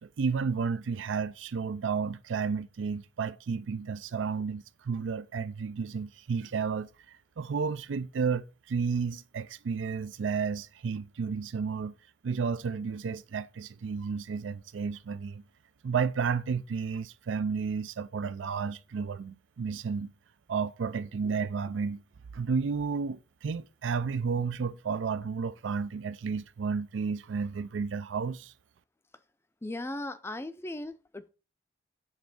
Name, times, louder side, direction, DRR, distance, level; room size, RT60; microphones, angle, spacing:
voice 1, 0.0-6.9 7.4-11.9 12.2-15.4 15.8-20.1 20.5-22.0 22.3-28.5, right 5 dB, 85° right, 0.4 m, -32 dB
voice 2, 29.6-31.3, left 1 dB, 15° left, 0.4 m, -37 dB
7.3 x 3.5 x 5.8 m
head